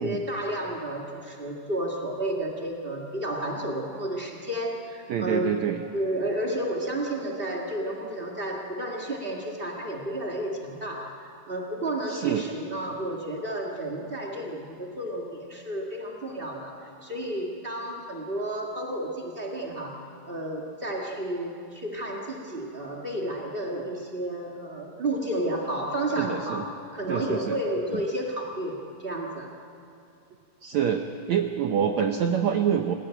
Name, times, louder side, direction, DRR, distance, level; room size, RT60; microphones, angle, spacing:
voice 1, 0.0-5.6 5.9-29.5, right 1 dB, 55° right, 0 dB, 0.6 m, -32 dB
voice 2, 5.1-5.8 12.1-12.4 26.2-26.6 27.1-27.6 30.6-31.0 31.3-32.9, right 8 dB, 85° right, 6 dB, 1.5 m, -26 dB
28.5 x 17.0 x 8.9 m, 2.7 s
omnidirectional pair, 4.6 m